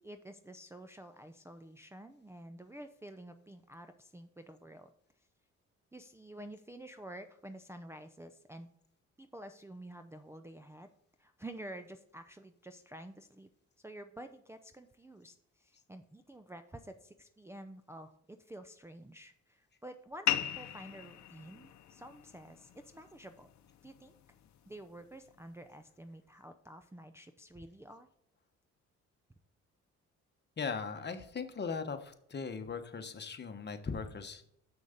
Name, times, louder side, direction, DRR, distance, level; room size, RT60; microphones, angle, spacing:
voice 1, 0.0-4.9 5.9-8.7 9.2-10.9 11.2-13.5 13.8-23.5 23.8-24.1 24.7-28.1, right 1 dB, 10° right, 5 dB, 0.5 m, -50 dB
sound 1, 20.3-25.3, left 11 dB, 65° left, 0.8 m, -39 dB
voice 2, 30.6-34.4, left 5 dB, 35° left, 7 dB, 1.2 m, -39 dB
7.1 x 6.1 x 5.1 m, 0.71 s
cardioid pair, 90°, 30 cm